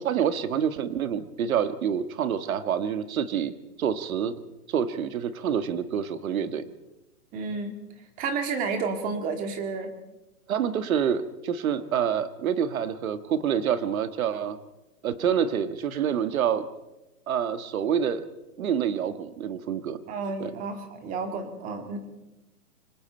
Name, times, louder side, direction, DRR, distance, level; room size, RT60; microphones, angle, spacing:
voice 1, 0.0-3.5 3.8-4.4 4.7-6.6 10.5-14.6 15.0-16.6 17.3-18.2 18.6-20.0 20.4-20.5, right 8 dB, 60° right, 11 dB, 1.7 m, -27 dB
voice 2, 7.3-7.8 8.2-9.9 20.1-22.1, right 4 dB, 15° right, 6 dB, 1.9 m, -31 dB
25.5 x 25.5 x 4.4 m, 0.98 s
hypercardioid pair, 165°, 47 cm